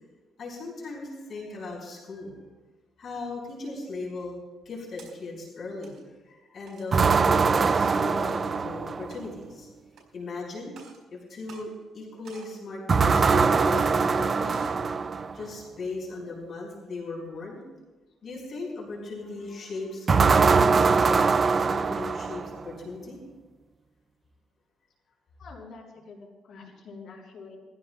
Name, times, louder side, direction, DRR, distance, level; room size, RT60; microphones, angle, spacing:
voice 1, 0.4-2.4 3.0-4.3 4.7-5.9 6.3-9.7 10.1-10.7 11.1-11.7 11.9-14.6 15.3-17.6 18.2-23.2, left 3 dB, 50° left, -2 dB, 5.3 m, -38 dB
sound 1, 4.6-5.1 5.7-6.0 6.7-6.9 7.5-7.7 8.3-8.4 9.0-9.4 9.9-10.0 10.7-11.0 11.4-12.0 12.2-12.6 13.0-13.3 13.7-13.9 14.4-14.8, right 5 dB, 70° right, 4.6 m, -50 dB
sound 2, 6.9-9.3 12.9-15.4 20.1-22.7, right 5 dB, 35° right, 0.4 m, -22 dB
voice 2, 25.4-27.6, left 4 dB, 65° left, -2 dB, 5.8 m, -46 dB
22.0 x 15.5 x 2.4 m, 1.2 s
cardioid pair, 120°, 0 cm